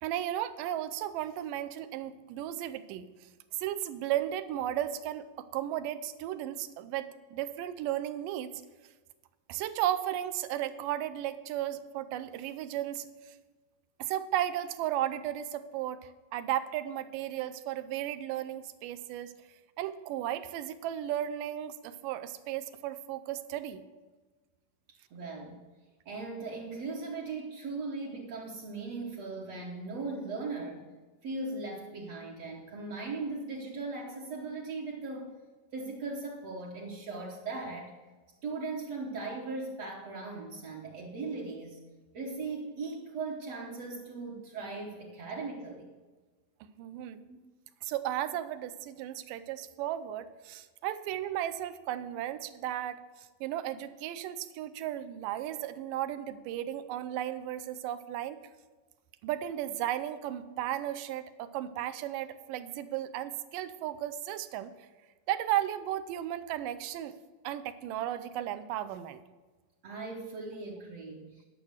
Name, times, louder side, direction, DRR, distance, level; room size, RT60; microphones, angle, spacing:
voice 1, 0.0-3.3 3.5-8.5 9.5-13.4 14.0-19.3 19.8-23.8 46.8-47.2 47.8-58.4 59.2-64.7 65.3-67.2 67.4-69.2, right 12 dB, 85° right, 11 dB, 2.3 m, -35 dB
voice 2, 25.1-25.6 26.1-30.9 31.2-35.3 35.7-38.0 38.4-41.8 42.1-45.9 47.3-47.4 69.8-71.4, right 3 dB, 60° right, -2 dB, 2.0 m, -38 dB
10.5 x 6.0 x 8.0 m, 1.3 s
omnidirectional pair, 3.7 m